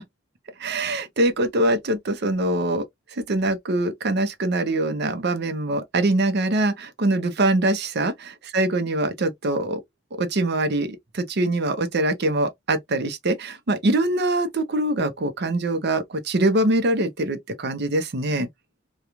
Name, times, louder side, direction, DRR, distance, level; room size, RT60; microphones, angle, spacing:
voice 1, 0.6-2.8 3.2-8.1 8.5-9.8 10.1-18.5, right 2 dB, 60° right, 0.6 m, -23 dB
2.9 x 2.3 x 2.3 m
head